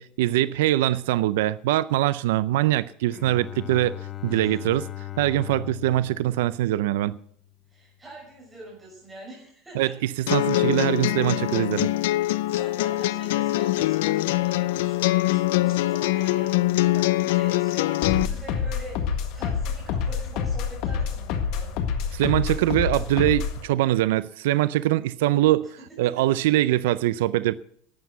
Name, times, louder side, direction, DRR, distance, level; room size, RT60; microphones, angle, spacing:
voice 1, 0.0-4.0 4.2-4.9 5.2-7.2 9.7-11.9 22.1-27.5, right 15 dB, 85° right, 0.5 m, -23 dB
Bowed string instrument, 3.0-7.6, left 13 dB, 25° left, 0.5 m, -39 dB
voice 2, 4.3-4.6 7.7-10.0 12.1-21.7 25.8-25.9 26.2-26.4, right 1 dB, 10° right, 6.1 m, -44 dB
sound 1, 10.3-18.3, left 17 dB, 80° left, 0.5 m, -23 dB
sound 2, 18.0-23.6, left 6 dB, 45° left, 1.7 m, -28 dB
12.0 x 9.5 x 8.0 m
cardioid pair, 175°, 0 cm